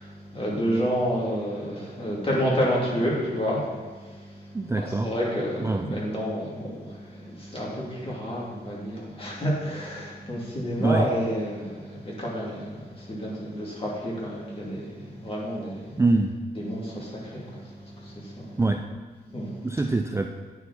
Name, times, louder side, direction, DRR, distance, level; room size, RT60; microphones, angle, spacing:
voice 1, 0.0-15.9 16.6-18.6 19.3-19.8, equal, 35° left, -5 dB, 2.6 m, -30 dB
voice 2, 4.5-5.1 5.6-6.1 10.8-11.1 16.0-16.4 18.6-18.8 19.6-20.3, right 3 dB, 15° right, 5 dB, 0.4 m, -24 dB
9.4 x 4.9 x 4.2 m, 1.4 s
cardioid pair, 65°, 17 cm